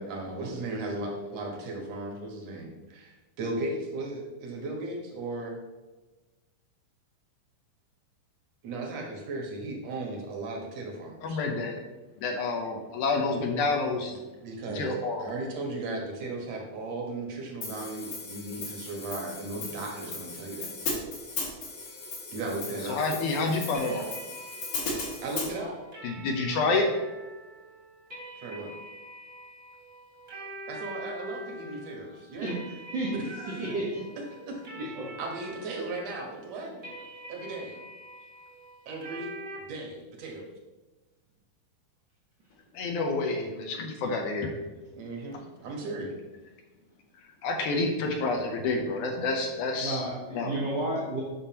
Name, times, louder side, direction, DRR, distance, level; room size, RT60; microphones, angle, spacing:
voice 1, 0.0-5.6 8.6-11.4 14.4-20.7 22.3-23.0 25.2-25.8 28.4-28.7 30.7-32.5 33.1-33.7 35.2-36.7 37.3-37.7 38.9-39.3 39.6-40.5 44.9-46.1, right 2 dB, 60° right, 0 dB, 2.0 m, -36 dB
voice 2, 11.2-11.8 12.2-14.1 14.7-15.2 22.9-24.1 26.0-26.9 42.7-44.5 47.4-50.0 50.3-50.6, left 3 dB, 75° left, 3 dB, 2.0 m, -28 dB
Hi-hat, 17.6-25.5, left 3 dB, 55° left, 2.7 m, -37 dB
sound 1, 23.7-39.6, right 1 dB, 35° right, 1.4 m, -45 dB
voice 3, 33.6-34.0 34.7-34.8 49.8-51.2, right 2 dB, 85° right, -7 dB, 0.9 m, -31 dB
8.8 x 6.5 x 2.9 m, 1.2 s
omnidirectional pair, 4.1 m